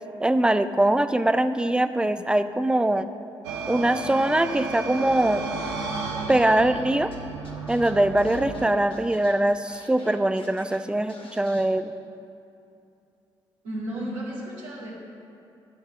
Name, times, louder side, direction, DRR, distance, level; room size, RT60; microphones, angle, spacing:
voice 1, 0.2-3.1 3.7-5.4 6.3-7.1 7.7-11.9, right 1 dB, 5° right, 11 dB, 0.4 m, -22 dB
sound 1, 3.4-8.7, right 3 dB, 85° right, 0.7 m, -33 dB
Scratching (performance technique), 7.1-7.2 7.4-10.8 11.1-11.6, left 2 dB, 45° left, 1.5 m, -49 dB
voice 2, 13.6-14.9, right 1 dB, 70° right, -6 dB, 1.9 m, -33 dB
10.5 x 3.7 x 6.9 m, 2.6 s
hypercardioid pair, 40°, 13 cm